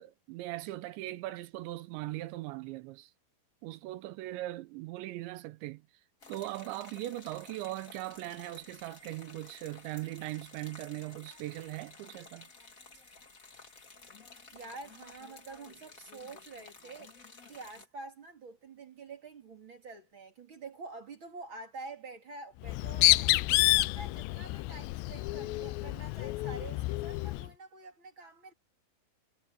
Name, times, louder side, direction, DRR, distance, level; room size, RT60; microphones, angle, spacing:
voice 1, 0.0-3.1 3.6-5.8 6.3-12.5, right 17 dB, 80° right, 2.8 m, -40 dB
sound 1, 6.2-17.8, left 4 dB, 45° left, 1.0 m, -53 dB
voice 2, 14.5-17.2 17.5-23.3 23.7-28.5, right 3 dB, 35° right, 2.4 m, -47 dB
Bird, 22.6-27.5, left 21 dB, 90° left, 2.5 m, -28 dB
omnidirectional pair, 5.7 m